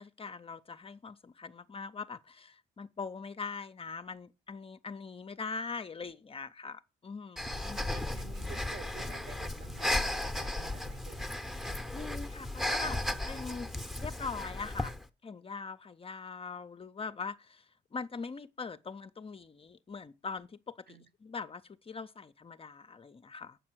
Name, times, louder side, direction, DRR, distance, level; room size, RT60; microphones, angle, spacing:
voice 1, 0.0-7.8 11.9-13.0 13.3-13.7 14.0-14.9 15.2-23.6, left 4 dB, 30° left, 0.5 m, -42 dB
Breathing, 7.4-15.0, left 1 dB, ahead, 0.8 m, -35 dB
voice 2, 7.4-11.2 20.9-21.1, right 6 dB, 55° right, 1.4 m, -51 dB
8.1 x 5.5 x 6.0 m
cardioid pair, 90°, 20 cm